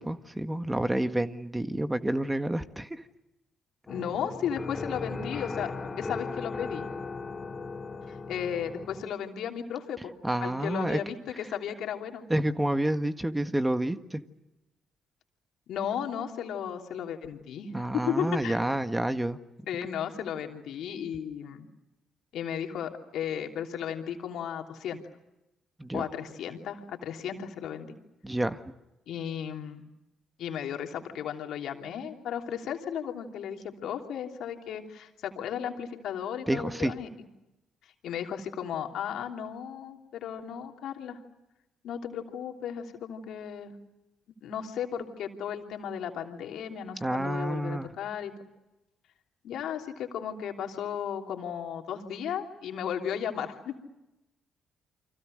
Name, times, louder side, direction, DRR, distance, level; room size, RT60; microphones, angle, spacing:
voice 1, 0.0-3.0 10.2-11.0 12.3-14.2 17.7-19.4 25.8-26.0 28.2-28.6 36.5-36.9 47.0-47.9, right 1 dB, 15° right, 10 dB, 1.7 m, -29 dB
voice 2, 3.9-6.9 8.1-10.1 10.4-12.2 15.7-17.7 18.1-18.6 19.7-21.6 22.3-25.0 25.9-27.9 29.1-29.8 30.4-37.1 38.0-41.2 41.8-43.7 44.4-48.3 49.4-53.8, left 8 dB, 65° left, 4 dB, 3.0 m, -35 dB
sound 1, 3.9-9.1, left 4 dB, 30° left, 2.9 m, -37 dB
30.0 x 25.0 x 6.5 m, 0.97 s
hypercardioid pair, 50°, 0 cm